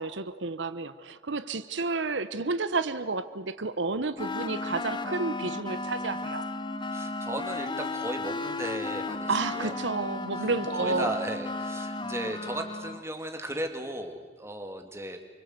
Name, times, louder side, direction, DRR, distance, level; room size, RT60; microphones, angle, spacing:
voice 1, 0.0-6.5 9.3-11.1, right 3 dB, 80° right, 12 dB, 1.0 m, -31 dB
sound 1, 4.2-13.0, left 2 dB, 25° left, 1.1 m, -34 dB
voice 2, 6.9-9.7 10.4-10.5 10.8-15.2, right 1 dB, 15° right, 5 dB, 2.6 m, -36 dB
29.0 x 25.0 x 8.1 m, 1.4 s
head